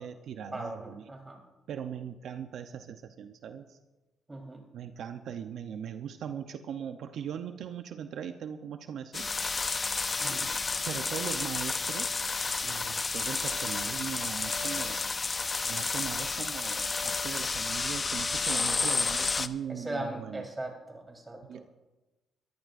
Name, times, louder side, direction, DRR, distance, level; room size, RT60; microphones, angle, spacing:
voice 1, 0.0-1.1 1.7-3.8 4.7-9.3 10.2-10.6 10.8-12.2 12.6-15.0 15.6-20.5 21.4-21.7, right 8 dB, 70° right, 7 dB, 0.8 m, -40 dB
voice 2, 0.5-1.4 4.3-4.6 10.2-10.4 18.9-19.0 19.7-21.6, right 1 dB, 20° right, 2 dB, 3.8 m, -39 dB
sound 1, 9.1-19.5, left 4 dB, 30° left, 0.6 m, -31 dB
22.5 x 14.0 x 2.6 m, 1.1 s
cardioid pair, 90°, 0 cm